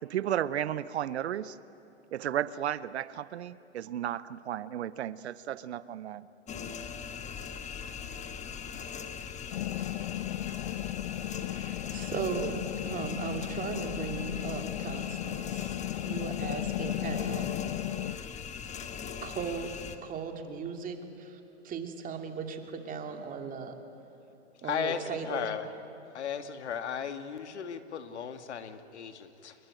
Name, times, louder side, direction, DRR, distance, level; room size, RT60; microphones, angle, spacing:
voice 1, 0.0-1.6 2.1-6.3, right 11 dB, 70° right, 17 dB, 0.9 m, -33 dB
sound 1, 6.5-20.0, left 6 dB, 20° left, 1.6 m, -40 dB
sound 2, 9.5-18.2, left 15 dB, 55° left, 0.5 m, -35 dB
voice 2, 11.4-17.5 19.2-19.7 20.0-23.8 24.6-25.5, right 6 dB, 25° right, 4 dB, 2.8 m, -37 dB
voice 3, 24.6-25.7 26.1-29.6, left 7 dB, 75° left, 8 dB, 2.1 m, -36 dB
28.0 x 22.0 x 9.2 m, 3.0 s
hypercardioid pair, 120°, 34 cm